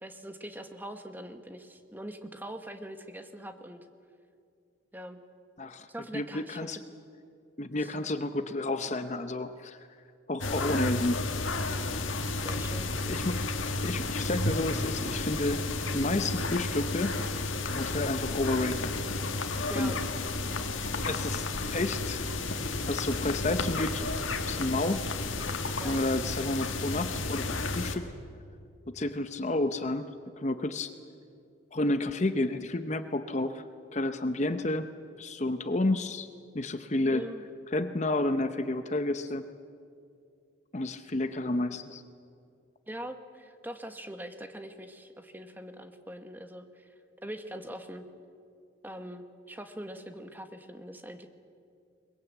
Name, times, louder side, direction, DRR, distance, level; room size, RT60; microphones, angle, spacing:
voice 1, 0.0-3.9 4.9-5.2 5.9-6.8 7.8-7.9 10.7-11.0 12.4-13.2 19.7-20.0 25.8-26.1 37.1-37.4 42.9-46.9 47.2-48.0 48.8-51.3, equal, 10° right, 7 dB, 1.2 m, -43 dB
voice 2, 6.1-6.8 7.6-9.8 10.3-11.2 13.1-13.4 13.8-17.1 17.7-18.9 19.4-19.5 19.7-19.9 21.0-21.5 21.7-22.2 22.9-24.1 24.4-25.1 25.8-28.1 28.9-30.0 30.4-30.9 31.7-33.6 33.9-34.9 35.2-36.3 36.5-37.2 37.7-39.5 40.7-42.0, left 2 dB, 35° left, 10 dB, 0.8 m, -30 dB
sound 1, 10.4-28.0, left 3 dB, 85° left, 1.7 m, -32 dB
22.5 x 21.5 x 8.2 m, 2.3 s
head